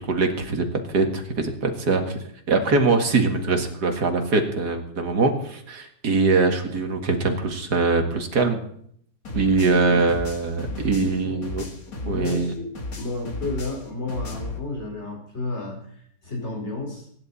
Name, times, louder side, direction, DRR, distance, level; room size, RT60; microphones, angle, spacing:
voice 1, 0.1-2.2 2.5-8.7 9.3-11.6 12.1-12.5, right 3 dB, 90° right, 4 dB, 2.4 m, -22 dB
sound 1, 9.2-12.5 12.7-14.6, left 3 dB, 65° left, 2.5 m, -34 dB
voice 2, 10.7-11.4 11.9-12.7 12.9-17.1, left 2 dB, 45° left, -1 dB, 5.1 m, -32 dB
24.0 x 11.0 x 4.2 m, 0.65 s
omnidirectional pair, 1.7 m